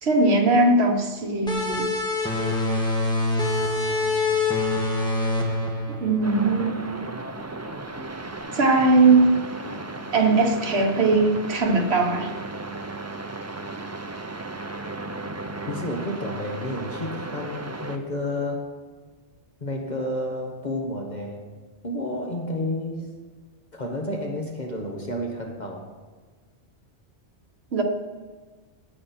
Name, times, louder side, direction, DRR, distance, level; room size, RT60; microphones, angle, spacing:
voice 1, 0.0-1.9 6.0-6.9 8.5-9.3 10.1-12.3 27.7-27.8, right 3 dB, 70° right, 4 dB, 1.5 m, -20 dB
sound 1, 1.5-6.7, left 2 dB, 5° left, 1.8 m, -25 dB
sound 2, 6.2-18.0, right 2 dB, 20° right, 0.5 m, -35 dB
voice 2, 15.7-18.6 19.6-21.4 21.8-23.1 23.7-25.8, left 1 dB, 40° left, 1 dB, 1.4 m, -30 dB
17.5 x 7.5 x 4.3 m, 1.4 s
omnidirectional pair, 1.1 m